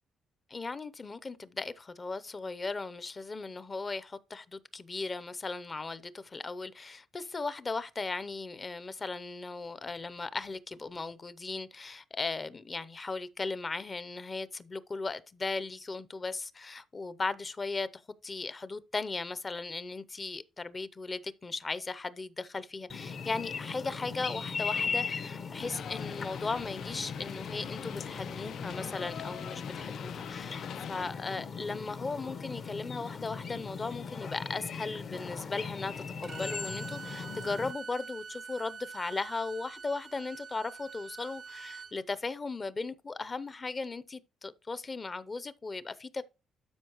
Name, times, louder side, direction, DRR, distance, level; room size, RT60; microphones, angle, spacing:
voice 1, 0.5-30.6 30.9-35.9 36.2-46.2, left 3 dB, 25° left, 0.7 m, -37 dB
sound 1, 22.9-37.7, left 5 dB, 45° left, 1.0 m, -39 dB
sound 2, 25.6-31.1, left 9 dB, 65° left, 0.4 m, -44 dB
Bowed string instrument, 36.2-41.9, right 5 dB, 45° right, 0.4 m, -45 dB
12.5 x 5.0 x 3.0 m
cardioid pair, 135°, 0 cm